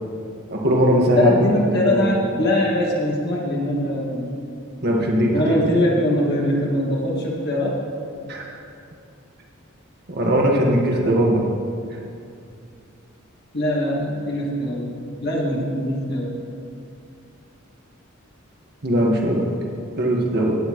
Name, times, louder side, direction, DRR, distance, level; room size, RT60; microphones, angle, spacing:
voice 1, 0.5-1.5 1.8-2.1 4.8-5.6 8.3-8.6 10.1-11.4 18.8-19.5 20.0-20.6, right 1 dB, 55° right, -1 dB, 1.7 m, -19 dB
voice 2, 1.1-4.3 5.3-7.8 13.5-14.9 15.2-16.4, left 1 dB, 55° left, -4 dB, 2.1 m, -22 dB
17.0 x 9.4 x 3.2 m, 2.5 s
head